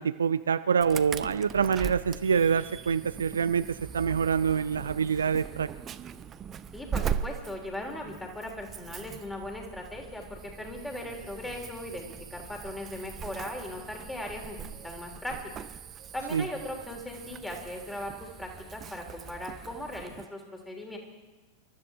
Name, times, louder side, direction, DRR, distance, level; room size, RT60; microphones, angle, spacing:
voice 1, 0.0-5.7 16.3-16.4, right 6 dB, 70° right, 13 dB, 0.4 m, -26 dB
Insect / Alarm, 0.8-20.3, right 8 dB, 25° right, 0.6 m, -40 dB
voice 2, 6.7-15.6 16.1-21.0, left 1 dB, 5° left, 2 dB, 3.1 m, -38 dB
26.5 x 13.5 x 3.6 m, 1.2 s
figure-of-eight pair, 90°, 0 cm